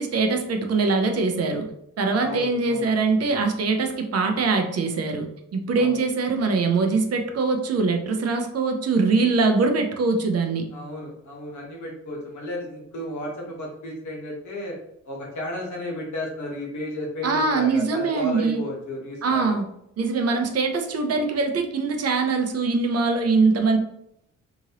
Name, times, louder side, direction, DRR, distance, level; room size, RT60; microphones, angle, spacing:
voice 1, 0.0-1.7 2.0-5.3 5.5-10.7 17.2-18.6 19.2-19.6 20.0-23.8, right 4 dB, 55° right, 5 dB, 0.6 m, -22 dB
voice 2, 2.2-2.9 5.7-6.0 10.7-14.8 15.0-19.6, left 1 dB, 75° left, -2 dB, 1.3 m, -33 dB
2.9 x 2.6 x 2.9 m, 0.75 s
cardioid pair, 85°, 29 cm